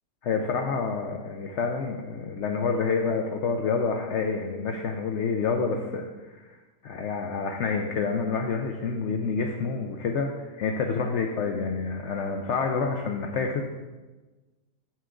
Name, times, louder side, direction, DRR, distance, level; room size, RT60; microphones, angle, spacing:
voice 1, 0.2-6.6 6.8-13.6, left 5 dB, 70° left, 3 dB, 0.7 m, -28 dB
7.0 x 5.9 x 3.7 m, 1.2 s
omnidirectional pair, 1.7 m